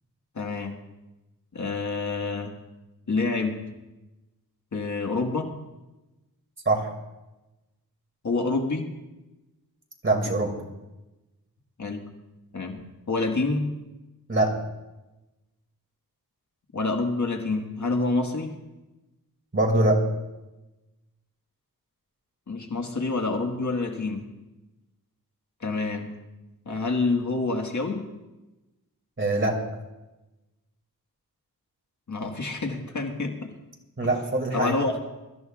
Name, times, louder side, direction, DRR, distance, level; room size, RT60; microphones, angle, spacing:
voice 1, 0.3-0.8 1.5-2.6 3.1-3.6 4.7-5.5 8.2-8.9 11.8-12.0 12.5-12.8 13.1-13.7 16.7-18.5 22.5-24.3 25.6-26.1 26.6-28.1 32.1-33.5 34.0-34.1 34.5-35.0, left 3 dB, 55° left, 2 dB, 1.7 m, -27 dB
voice 2, 10.0-10.5 14.3-14.6 19.5-20.0 29.2-29.6 34.0-34.8, right 2 dB, 35° right, 1 dB, 2.5 m, -23 dB
23.5 x 13.5 x 2.5 m, 1.0 s
wide cardioid pair, 95°, 35 cm